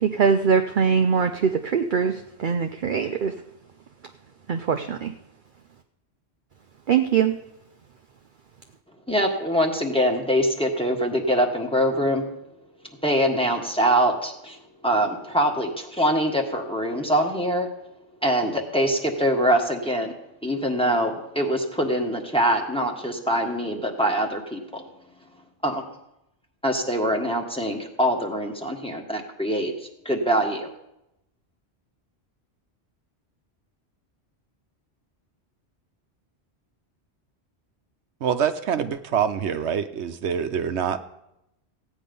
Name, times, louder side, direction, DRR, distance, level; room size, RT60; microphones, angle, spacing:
voice 1, 0.0-3.3 4.5-5.1 6.9-7.3, right 6 dB, 55° right, 6 dB, 0.7 m, -22 dB
voice 2, 9.1-12.3 13.0-14.6 14.8-17.7 18.2-20.1 20.4-24.8 25.6-25.8 26.6-29.7 30.0-30.7, equal, 5° left, 1 dB, 1.5 m, -23 dB
voice 3, 38.2-41.1, right 8 dB, 80° right, 9 dB, 1.0 m, -25 dB
15.5 x 9.3 x 5.4 m, 0.86 s
omnidirectional pair, 1.1 m